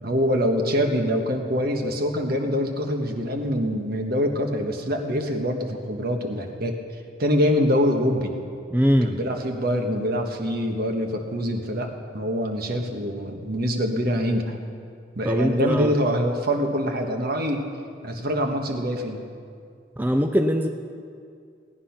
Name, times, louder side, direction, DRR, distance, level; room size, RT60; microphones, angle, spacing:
voice 1, 0.0-6.8 7.2-8.3 9.0-14.6 15.1-17.7 18.0-19.2, equal, 55° right, 4 dB, 1.4 m, -24 dB
voice 2, 8.7-9.1 15.2-15.9 20.0-20.7, equal, 10° right, 5 dB, 0.5 m, -21 dB
17.0 x 10.0 x 5.9 m, 2.3 s
head